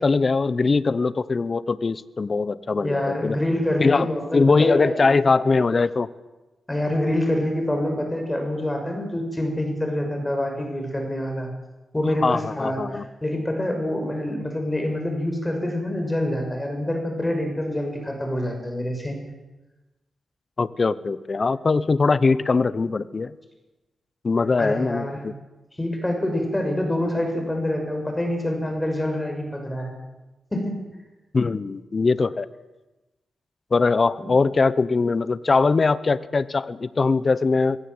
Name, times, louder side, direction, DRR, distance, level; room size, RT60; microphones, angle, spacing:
voice 1, 0.0-3.4 3.8-4.1 4.3-6.1 12.2-13.0 20.6-23.3 24.2-25.3 31.3-32.5 33.7-37.8, left 4 dB, 45° left, 16 dB, 0.9 m, -21 dB
voice 2, 2.8-5.0 6.7-11.5 11.9-19.2 24.6-25.2 25.8-29.9 30.5-30.8 34.2-34.3, left 1 dB, 15° left, 3 dB, 6.2 m, -26 dB
22.0 x 16.5 x 7.9 m, 1.1 s
cardioid pair, 70°, 0 cm